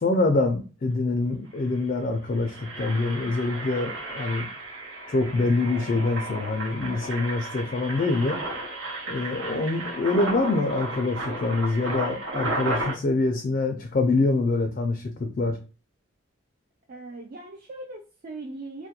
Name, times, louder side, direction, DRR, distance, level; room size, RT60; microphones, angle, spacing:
voice 1, 0.0-4.5 5.1-8.4 9.1-15.6, left 3 dB, 40° left, 0.3 m, -25 dB
Engine, 1.2-1.3 1.6-1.8 2.2-12.9, right 2 dB, 85° right, 1.0 m, -33 dB
voice 2, 16.9-18.9, right 2 dB, 45° right, 0.3 m, -39 dB
2.3 x 2.1 x 2.8 m
head